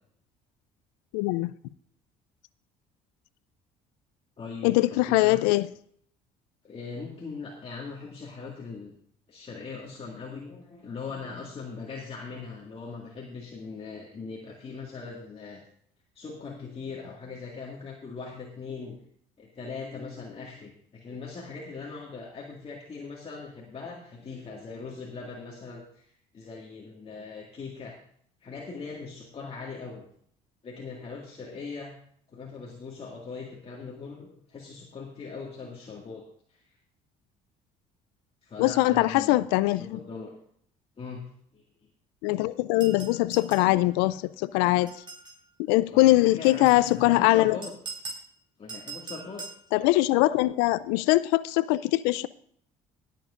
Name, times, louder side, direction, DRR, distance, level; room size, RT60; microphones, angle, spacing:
voice 1, 1.1-1.5 4.6-5.7 38.6-40.0 42.2-44.9 45.7-47.6 49.7-52.3, left 18 dB, 85° left, 17 dB, 0.4 m, -22 dB
voice 2, 4.4-5.5 6.6-8.9 9.3-15.6 16.2-19.0 19.4-26.0 26.3-28.0 28.4-30.1 30.6-31.9 32.3-36.8 38.4-39.5 39.8-40.4 41.0-41.2 41.5-41.6 45.9-47.7 48.6-49.4 51.7-51.8, left 4 dB, 35° left, -2 dB, 2.0 m, -40 dB
sound 1, 42.8-43.7 44.9-45.4 46.4-47.0 47.6-48.3 48.7-49.6, right 4 dB, 30° right, 4.2 m, -41 dB
23.0 x 7.7 x 2.5 m, 0.64 s
supercardioid pair, 75°, 17 cm